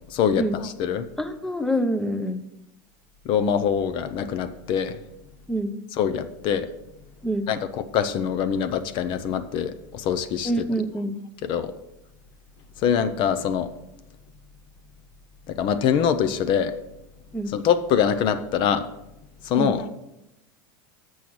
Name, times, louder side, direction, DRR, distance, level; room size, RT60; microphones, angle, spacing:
voice 1, 0.1-1.1 3.3-4.9 6.0-6.7 7.5-10.5 11.4-11.7 12.8-13.7 15.5-16.7 17.5-18.9 19.4-19.9, left 8 dB, 45° left, 11 dB, 0.6 m, -24 dB
voice 2, 1.2-2.4 5.5-5.7 7.2-7.5 10.4-11.2 17.3-17.5 19.6-19.8, right 1 dB, 5° left, 9 dB, 0.7 m, -26 dB
6.9 x 6.3 x 6.1 m, 0.89 s
supercardioid pair, 130°, 11 cm